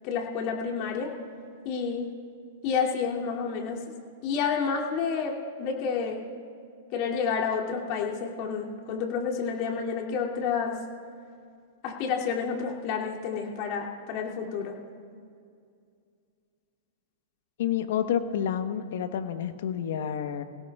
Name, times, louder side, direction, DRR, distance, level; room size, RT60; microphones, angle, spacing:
voice 1, 0.0-1.1 1.6-2.1 2.6-3.8 4.2-6.2 6.9-10.7 11.8-14.7, left 6 dB, 50° left, -1 dB, 2.7 m, -29 dB
voice 2, 17.6-20.4, left 9 dB, 65° left, 8 dB, 1.1 m, -29 dB
27.0 x 17.0 x 2.4 m, 2.3 s
hypercardioid pair, 110°, 0 cm